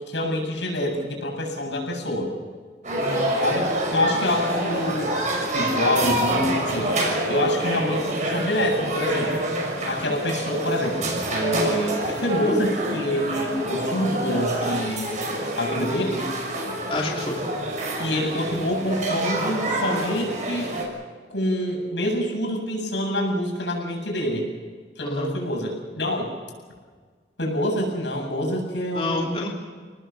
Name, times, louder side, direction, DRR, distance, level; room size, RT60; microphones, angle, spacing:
voice 1, 0.0-2.3 3.4-5.2 5.5-9.5 9.9-15.2 15.6-16.3 18.0-20.7 21.3-24.5 25.0-26.3 27.4-29.4, left 1 dB, 85° left, 1 dB, 7.5 m, -26 dB
sound 1, 2.8-20.9, right 1 dB, 45° right, 6.2 m, -27 dB
voice 2, 3.0-3.3 16.9-17.4 25.0-25.3 28.9-29.5, left 2 dB, 30° left, -2 dB, 2.8 m, -28 dB
28.5 x 19.0 x 7.0 m, 1.5 s
head